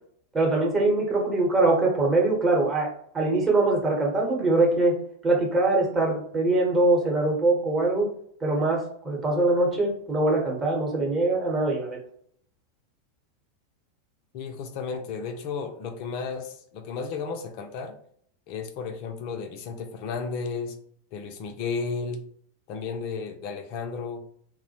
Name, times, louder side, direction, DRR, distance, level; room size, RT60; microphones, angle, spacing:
voice 1, 0.3-2.9 3.1-5.0 5.2-8.1 8.4-12.0, right 2 dB, 20° right, -2 dB, 0.9 m, -23 dB
voice 2, 14.3-18.0 18.5-20.8 21.1-22.2 22.7-24.2, left 5 dB, 45° left, 5 dB, 0.5 m, -33 dB
2.2 x 2.0 x 2.9 m, 0.63 s
figure-of-eight pair, 90°, 0 cm